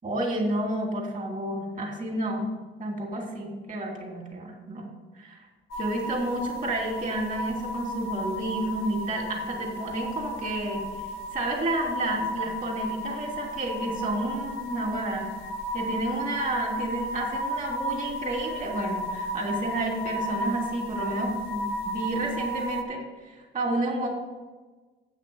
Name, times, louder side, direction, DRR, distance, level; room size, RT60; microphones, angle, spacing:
voice 1, 0.0-2.5 2.8-4.9 5.2-5.4 5.8-10.8 11.3-15.3 15.7-24.1, right 1 dB, 40° right, 0 dB, 2.8 m, -30 dB
sound 1, 5.7-22.8, equal, 85° left, 1.1 m, -34 dB
8.2 x 6.1 x 7.0 m, 1.3 s
cardioid pair, 90°, 20 cm